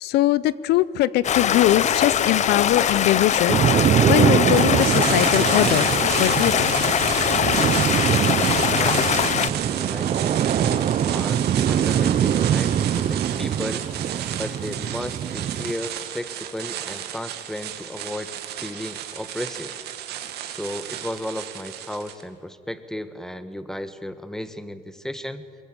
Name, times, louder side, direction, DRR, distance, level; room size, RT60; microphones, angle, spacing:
voice 1, 0.0-5.9 6.2-6.7, left 14 dB, 80° left, 19 dB, 0.6 m, -21 dB
Stream, 1.2-9.5, left 9 dB, 45° left, 0.7 m, -22 dB
sound 1, 3.5-15.7, right 9 dB, 45° right, 0.6 m, -23 dB
sound 2, 4.5-22.2, right 11 dB, 75° right, 2.0 m, -33 dB
voice 2, 8.8-13.9 14.4-19.7 20.5-25.5, left 1 dB, 5° left, 12 dB, 1.2 m, -34 dB
23.0 x 21.5 x 8.7 m, 2.4 s
cardioid pair, 110°, 17 cm